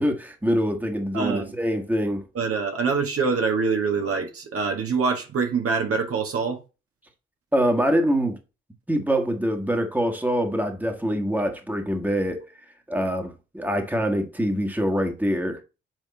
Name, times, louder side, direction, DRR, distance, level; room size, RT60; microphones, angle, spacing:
voice 1, 0.0-2.2 7.5-8.4 8.9-12.5 12.9-15.6, equal, 5° right, 1.7 m, -24 dB
voice 2, 1.1-1.5 2.3-6.6, right 5 dB, 50° right, 1.6 m, -25 dB
8.1 x 3.6 x 4.2 m
hypercardioid pair, 50°, 29 cm